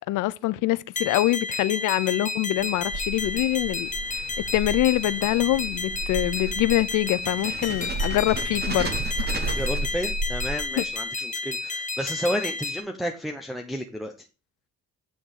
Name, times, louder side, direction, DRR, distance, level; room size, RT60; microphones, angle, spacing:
voice 1, 0.1-8.9 10.8-10.9, left 16 dB, 90° left, 0.6 m, -25 dB
sound 1, 1.0-12.8, left 3 dB, 25° left, 1.1 m, -31 dB
sound 2, 2.6-10.9, right 2 dB, 35° right, 1.5 m, -33 dB
voice 2, 9.4-14.1, equal, ahead, 0.9 m, -31 dB
8.5 x 3.6 x 6.3 m
cardioid pair, 90°, 30 cm